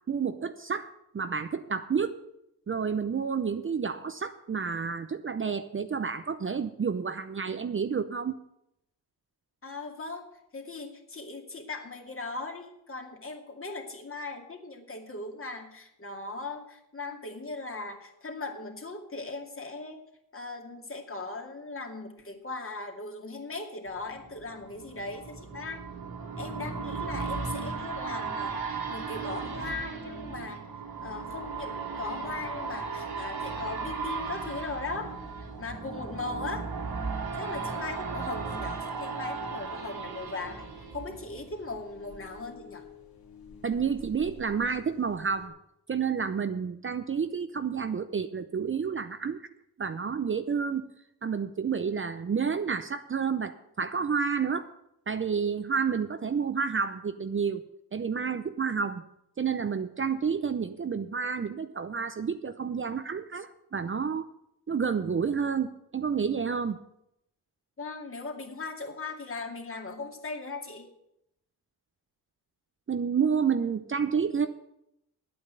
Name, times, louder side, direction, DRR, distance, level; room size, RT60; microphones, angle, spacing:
voice 1, 0.1-2.2 2.7-8.3 43.6-45.5 45.9-49.4 49.8-50.9 51.2-54.7 55.1-57.6 57.9-59.0 59.4-64.3 64.7-66.8 72.9-74.5, right 6 dB, 35° right, 10 dB, 0.7 m, -30 dB
voice 2, 9.6-20.0 20.3-25.8 26.4-30.6 31.0-35.1 35.6-36.7 37.4-40.7 40.9-42.8 67.8-70.9, left 3 dB, 35° left, 3 dB, 2.4 m, -38 dB
sound 1, 24.0-41.8 42.2-42.3, right 5 dB, 70° right, 2.5 m, -36 dB
sound 2, 34.9-45.5, left 5 dB, 70° left, 2.2 m, -52 dB
9.7 x 8.6 x 8.2 m, 0.80 s
cardioid pair, 90°, 38 cm